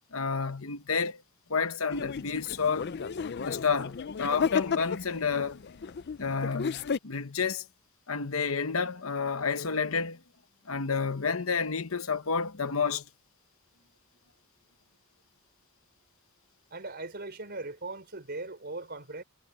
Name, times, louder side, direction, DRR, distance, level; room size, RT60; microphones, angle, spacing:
voice 1, 0.1-1.2 1.5-2.9 3.4-5.6 6.2-7.6 8.1-10.2 10.7-13.0, left 5 dB, 65° left, 1.0 m, -30 dB
sound 1, 1.9-7.0, left 6 dB, 50° left, 0.5 m, -33 dB
voice 2, 16.7-19.2, right 2 dB, 45° right, 4.1 m, -39 dB
head